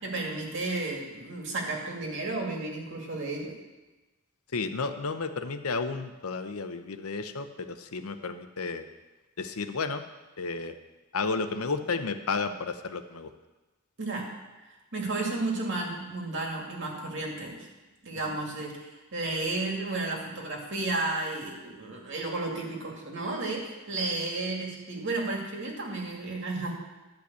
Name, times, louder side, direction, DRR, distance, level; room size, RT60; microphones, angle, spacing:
voice 1, 0.0-3.5 14.0-14.4 14.9-17.7 18.0-26.7, right 2 dB, 60° right, 0 dB, 2.3 m, -33 dB
voice 2, 4.5-8.8 9.4-10.0 10.4-10.7 11.1-13.3, left 4 dB, 85° left, 9 dB, 0.8 m, -32 dB
12.0 x 5.2 x 8.2 m, 1.1 s
head